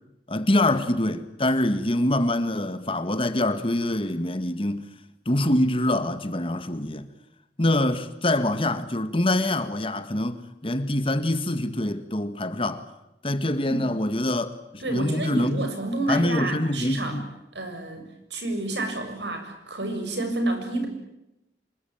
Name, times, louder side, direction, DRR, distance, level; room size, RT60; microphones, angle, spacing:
voice 1, 0.3-4.9 5.3-7.1 7.6-12.9 13.2-15.7 16.1-17.2, left 1 dB, 30° left, 1.8 m, -25 dB
voice 2, 14.8-17.2 17.5-20.9, right 2 dB, 80° right, 6.9 m, -29 dB
26.0 x 22.0 x 8.8 m
head